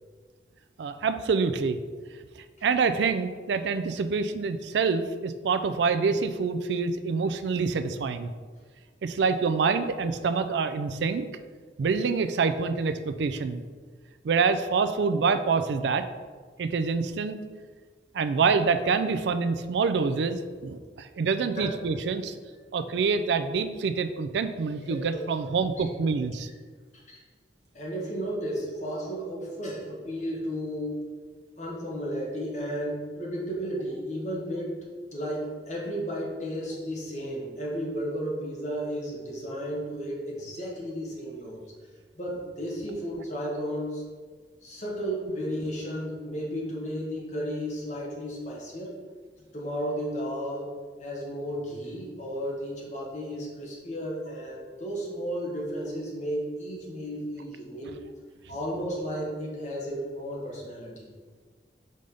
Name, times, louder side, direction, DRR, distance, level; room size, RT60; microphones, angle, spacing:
voice 1, 0.8-1.8 2.4-8.3 9.0-11.3 11.8-13.6 14.2-16.0 16.6-17.4 18.1-22.4 22.7-26.5, right 5 dB, 75° right, 9 dB, 0.4 m, -26 dB
voice 2, 24.9-25.3 26.9-27.2 27.7-31.1 31.6-34.8 35.1-41.6 42.2-44.0 44.6-48.9 49.5-50.7 51.0-58.0 58.5-61.1, equal, 40° left, -3 dB, 1.4 m, -33 dB
5.3 x 3.3 x 5.3 m, 1.5 s
head